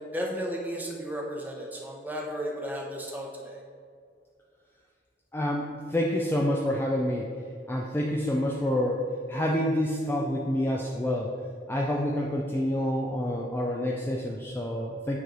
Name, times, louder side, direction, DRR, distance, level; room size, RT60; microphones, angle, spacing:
voice 1, 0.0-3.6, equal, 10° right, -1 dB, 0.8 m, -34 dB
voice 2, 5.3-7.3 7.7-9.0 9.3-11.3 11.7-15.2, left 1 dB, 10° left, -2 dB, 0.4 m, -28 dB
9.1 x 3.2 x 3.9 m, 2.2 s
head